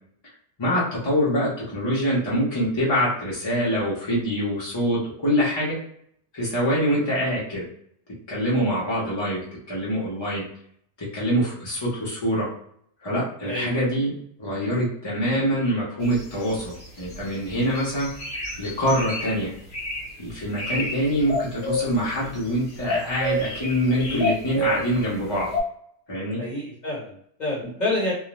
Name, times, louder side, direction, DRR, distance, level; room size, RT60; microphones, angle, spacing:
voice 1, 0.6-5.8 6.3-7.7 8.3-9.4 9.7-10.4 11.0-12.5 13.0-18.1 18.6-19.5 20.2-25.5 26.1-26.4, equal, 25° left, -7 dB, 0.8 m, -25 dB
voice 2, 13.4-13.7 20.6-20.9 23.9-24.3 26.4-28.1, left 2 dB, 40° left, -5 dB, 1.2 m, -29 dB
sound 1, 16.1-17.3 17.7-19.3 19.7-20.1 20.4-20.9 21.2-22.5 22.8-24.9 25.5-25.6, left 1 dB, 65° left, 1.3 m, -28 dB
2.4 x 2.1 x 3.0 m, 0.66 s
omnidirectional pair, 1.1 m